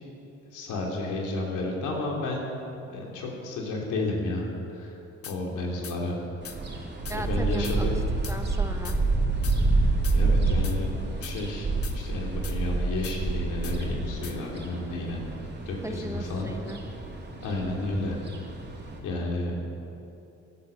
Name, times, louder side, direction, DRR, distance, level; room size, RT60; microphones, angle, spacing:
voice 1, 0.5-2.4 2.9-5.0 5.2-6.2 7.1-8.0 10.1-11.7 11.9-15.2 15.7-16.5 17.4-18.2 19.0-19.6, left 2 dB, 85° left, -1 dB, 3.4 m, -31 dB
sound 1, 5.2-5.4 5.8-6.0 6.4-6.6 7.1-7.2 7.6-7.8 8.2-8.4 8.8-9.0 9.4-9.6 10.0-10.2 10.6-10.8 11.2-11.4 11.8-12.0 12.4-12.6 13.0-13.2 13.6-13.8 14.2-14.4, left 7 dB, 50° left, 1.3 m, -41 dB
sound 2, 6.4-19.0, right 3 dB, 35° right, 3.1 m, -28 dB
voice 2, 7.1-7.9 8.3-9.0 15.8-16.8, right 1 dB, 10° right, 4 dB, 1.4 m, -37 dB
15.0 x 12.5 x 7.1 m, 2.8 s
cardioid pair, 90°, 30 cm